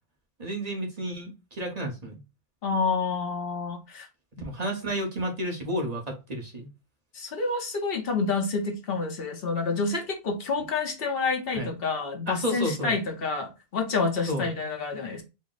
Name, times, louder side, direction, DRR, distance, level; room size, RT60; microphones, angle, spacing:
voice 1, 0.4-2.2 4.4-6.7 11.5-11.7 12.3-13.0 14.3-14.5, equal, 40° right, 1.0 m, -31 dB
voice 2, 2.6-4.1 7.1-15.2, left 4 dB, 65° left, 1.1 m, -28 dB
4.2 x 2.1 x 3.9 m
omnidirectional pair, 1.1 m